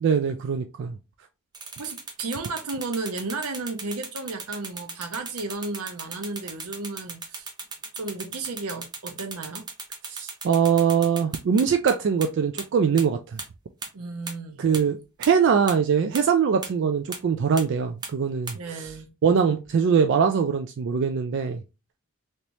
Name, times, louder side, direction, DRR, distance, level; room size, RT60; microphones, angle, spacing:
voice 1, 0.0-0.9 10.1-13.4 14.6-18.9 19.2-21.6, right 6 dB, 55° right, 0.3 m, -22 dB
sound 1, 1.5-11.9 12.2-12.3 12.6-12.7 13.0-13.1 13.4-13.5 13.8-13.9 14.3-14.4 14.7-14.8 15.2-15.3 15.7-15.8 16.1-16.2 16.6-16.7 17.1-17.2 17.6-17.7 18.0-18.1 18.5-18.6, right 4 dB, 20° right, 0.6 m, -35 dB
voice 2, 1.8-7.5 7.9-9.6 13.9-14.6 18.5-19.1, right 3 dB, 85° right, 0.7 m, -33 dB
3.2 x 2.9 x 2.7 m
head